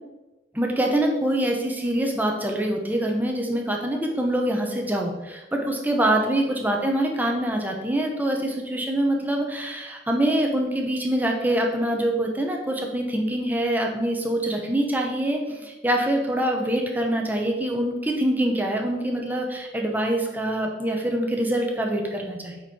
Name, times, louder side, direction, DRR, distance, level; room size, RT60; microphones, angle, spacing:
voice 1, 0.5-22.6, right 1 dB, 10° right, 1 dB, 0.9 m, -25 dB
7.6 x 4.5 x 4.3 m, 1.1 s
head